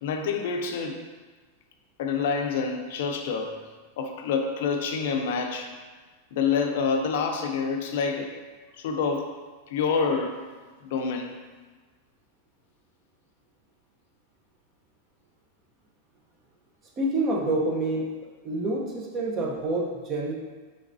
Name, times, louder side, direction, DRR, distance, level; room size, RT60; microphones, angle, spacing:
voice 1, 0.0-1.0 2.0-3.7 4.0-5.7 6.3-8.3 8.8-10.4 10.8-11.4, left 5 dB, 70° left, 4 dB, 0.5 m, -27 dB
voice 2, 17.0-18.1 18.4-20.3, right 2 dB, 30° right, -1 dB, 0.7 m, -27 dB
4.7 x 3.3 x 2.6 m, 1.4 s
supercardioid pair, 145°, 0 cm